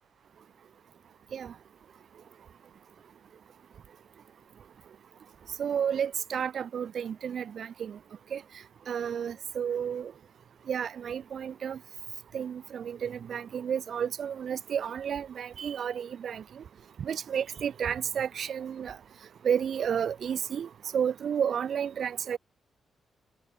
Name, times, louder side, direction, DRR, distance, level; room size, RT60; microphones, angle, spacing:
voice 1, 5.6-8.0 8.3-8.4 8.9-10.1 10.7-11.8 12.3-16.6 17.0-19.0 19.4-22.4, right 8 dB, 60° right, 0.4 m, -31 dB
cardioid pair, 105°, 0 cm